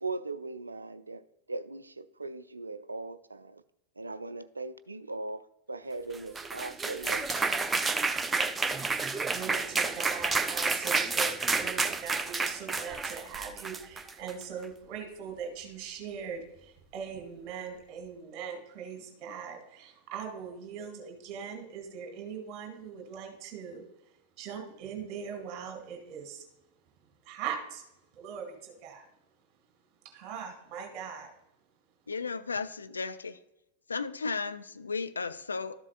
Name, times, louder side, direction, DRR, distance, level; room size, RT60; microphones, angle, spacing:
voice 1, 0.0-1.2 1.5-3.6 4.0-7.6, right 3 dB, 80° right, 0.3 m, -39 dB
sound 1, 5.8-18.2, right 2 dB, 5° left, 2.8 m, -55 dB
sound 2, 6.1-14.4, right 4 dB, 15° right, 0.4 m, -30 dB
voice 2, 9.2-23.9 24.4-26.4 27.2-27.8 28.1-29.0 30.0-31.3, right 7 dB, 40° right, 2.1 m, -40 dB
voice 3, 32.1-33.4 33.9-35.8, left 4 dB, 75° left, 0.4 m, -34 dB
12.5 x 7.3 x 2.5 m
figure-of-eight pair, 90°, 0 cm